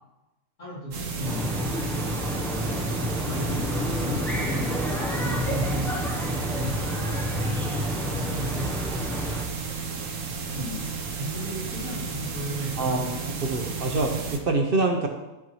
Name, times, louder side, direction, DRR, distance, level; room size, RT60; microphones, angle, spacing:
voice 1, 0.6-1.9 2.6-6.0 6.5-8.7 10.5-13.7, equal, 75° left, -8 dB, 3.4 m, -36 dB
sound 1, 0.9-14.4, right 5 dB, 75° right, 1.3 m, -33 dB
sound 2, 1.2-9.5, equal, ahead, 0.6 m, -29 dB
voice 2, 13.4-15.1, right 3 dB, 50° right, 3 dB, 0.9 m, -25 dB
13.0 x 4.5 x 3.1 m, 1.0 s
omnidirectional pair, 1.4 m